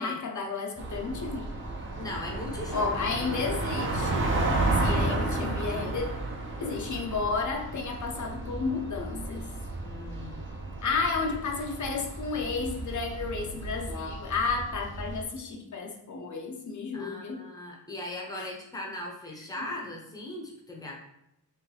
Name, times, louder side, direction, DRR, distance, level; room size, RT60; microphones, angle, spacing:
voice 1, 0.0-1.5 2.7-6.1 6.6-9.5 10.8-17.4 18.3-18.5, left 4 dB, 50° left, 2 dB, 0.6 m, -32 dB
sound 1, 0.8-15.2, right 2 dB, 30° right, 0.6 m, -32 dB
voice 2, 2.0-2.9 3.2-3.3 4.9-5.9 9.8-10.5 16.9-21.0, left 1 dB, 10° left, -1 dB, 0.7 m, -39 dB
3.1 x 3.1 x 3.8 m, 0.80 s
wide cardioid pair, 175°, 38 cm